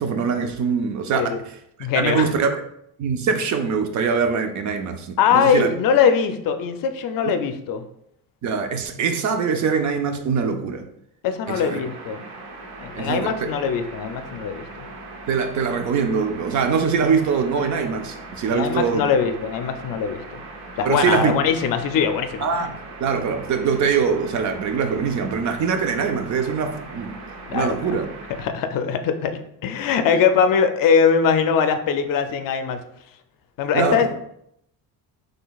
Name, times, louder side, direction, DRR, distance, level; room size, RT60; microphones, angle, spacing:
voice 1, 0.0-1.4 2.0-2.6 3.0-5.7 7.2-7.3 8.4-10.9 11.5-11.8 13.0-13.5 15.3-19.1 20.9-21.3 22.4-22.7 23.0-27.2 27.5-28.1 33.7-34.1, right 6 dB, 45° right, 7 dB, 0.5 m, -23 dB
voice 2, 1.8-2.3 5.2-7.8 11.2-12.2 12.8-14.7 18.5-20.4 20.8-22.7 27.5-28.0 28.4-32.8 33.6-34.2, left 6 dB, 55° left, 8 dB, 0.5 m, -21 dB
sound 1, 11.5-28.5, right 2 dB, 80° right, 1.0 m, -39 dB
5.7 x 3.3 x 2.3 m, 0.74 s
cardioid pair, 150°, 40 cm